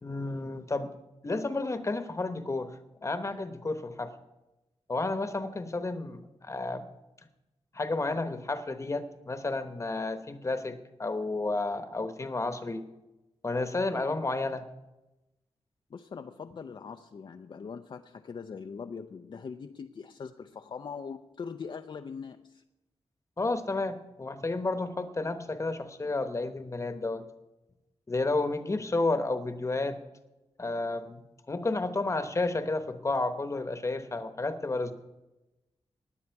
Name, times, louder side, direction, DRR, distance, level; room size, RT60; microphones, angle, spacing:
voice 1, 0.0-1.0 1.2-4.1 4.9-6.9 7.7-12.9 13.4-14.6 23.4-27.2 28.1-30.0 30.6-34.9, left 2 dB, 25° left, 9 dB, 1.0 m, -31 dB
voice 2, 15.9-22.6, left 5 dB, 45° left, 7 dB, 0.4 m, -41 dB
17.5 x 9.8 x 4.6 m, 1.0 s
wide cardioid pair, 140°, 11 cm